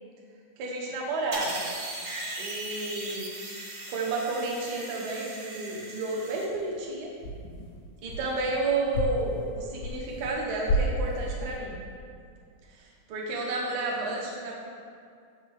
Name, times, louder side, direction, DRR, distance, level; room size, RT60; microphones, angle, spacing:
voice 1, 0.6-1.7 2.4-3.3 3.9-7.1 8.0-11.8 12.7-14.5, right 2 dB, 90° right, -3 dB, 0.9 m, -31 dB
sound 1, 1.3-6.5, right 2 dB, 65° right, 0.7 m, -38 dB
sound 2, 6.5-6.9 7.2-8.6 8.9-10.4 10.7-11.6, equal, 85° left, 2.1 m, -31 dB
6.2 x 5.8 x 3.4 m, 2.3 s
omnidirectional pair, 3.3 m